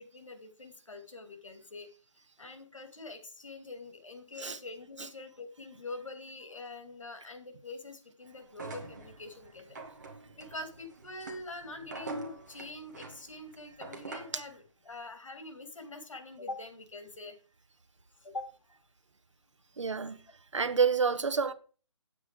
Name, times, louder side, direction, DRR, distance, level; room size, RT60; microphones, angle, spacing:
voice 1, 0.0-1.9 2.4-9.8 10.3-17.4 18.2-18.5 19.8-19.9, left 2 dB, 80° left, 2.6 m, -44 dB
sound 1, 8.5-14.5, right 3 dB, 35° right, 1.9 m, -45 dB
voice 2, 19.8-20.2 20.5-21.5, right 5 dB, 70° right, 1.4 m, -28 dB
9.0 x 8.1 x 4.9 m
hypercardioid pair, 175°, 16 cm